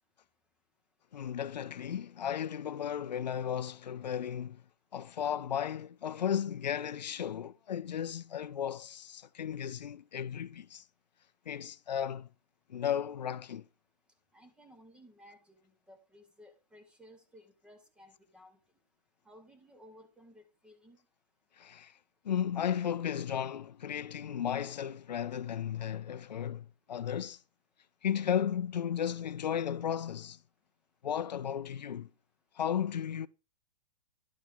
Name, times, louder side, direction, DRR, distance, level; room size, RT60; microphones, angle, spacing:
voice 1, 1.1-4.6 4.9-10.8 11.5-12.3 12.7-13.6 21.6-21.9 22.2-27.4 28.0-30.4 31.0-32.1 32.6-33.3, left 9 dB, 85° left, 0.5 m, -34 dB
voice 2, 14.3-18.6 19.2-21.0, equal, 5° right, 1.5 m, -57 dB
11.5 x 4.6 x 5.3 m
hypercardioid pair, 130°, 21 cm